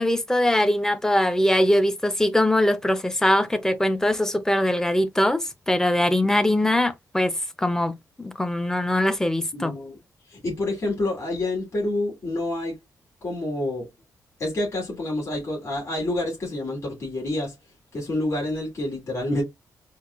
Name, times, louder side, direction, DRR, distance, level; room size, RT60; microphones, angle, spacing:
voice 1, 0.0-7.3 7.6-9.7, left 1 dB, 10° left, 0.5 m, -22 dB
voice 2, 9.5-10.0 10.3-12.8 13.2-13.9 14.4-17.5 17.9-19.4, left 1 dB, 45° left, 2.6 m, -28 dB
4.6 x 2.5 x 2.3 m
wide cardioid pair, 130°, 7 cm